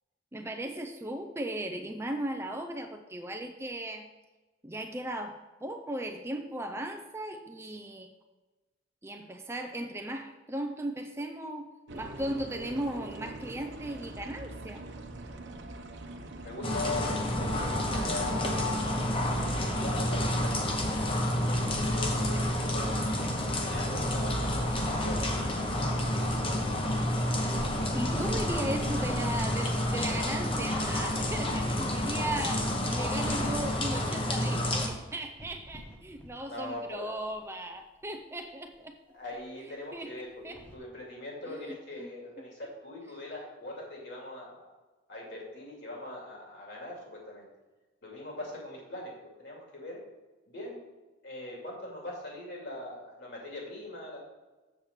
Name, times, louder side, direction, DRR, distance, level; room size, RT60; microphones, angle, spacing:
voice 1, 0.3-4.1 4.6-8.1 9.0-14.8 27.9-39.0 39.9-40.6 41.5-41.6 42.0-42.1, right 1 dB, 15° right, 4 dB, 0.4 m, -37 dB
sound 1, 11.9-31.3, right 1 dB, 60° right, 0.9 m, -44 dB
voice 2, 16.4-18.4 19.4-20.6 20.9-24.7 25.0-25.5 36.5-37.1 39.1-44.7 45.1-47.4 48.0-49.1 49.4-50.0 50.5-50.8 51.2-54.2, left 1 dB, 60° left, -2 dB, 2.7 m, -41 dB
sound 2, 16.6-34.9, left 1 dB, 25° left, 0.9 m, -29 dB
sound 3, 26.9-30.4 30.7-30.8 31.4-34.1 34.4-37.5 37.8-37.9 38.0-38.1 38.7-38.8 40.3-40.8, equal, 10° left, 1.2 m, -44 dB
7.3 x 4.3 x 6.7 m, 1.2 s
head